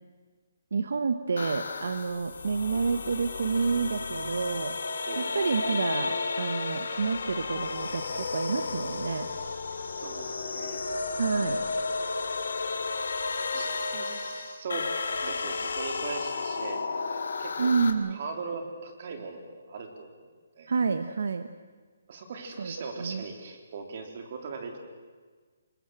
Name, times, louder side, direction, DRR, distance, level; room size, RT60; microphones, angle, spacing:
voice 1, 0.7-4.8 5.2-9.3 11.2-11.6 17.6-18.2 20.7-21.5 22.6-22.7 23.0-23.2, right 5 dB, 65° right, 10 dB, 1.2 m, -29 dB
sound 1, 1.4-17.9, left 4 dB, 70° left, 2.8 m, -33 dB
voice 2, 10.0-10.8 13.5-14.9 15.2-17.8 18.1-20.1 20.6-20.7 22.1-24.8, right 4 dB, 35° right, 5 dB, 3.5 m, -39 dB
27.0 x 21.0 x 7.7 m, 1.5 s
hypercardioid pair, 175°, 0 cm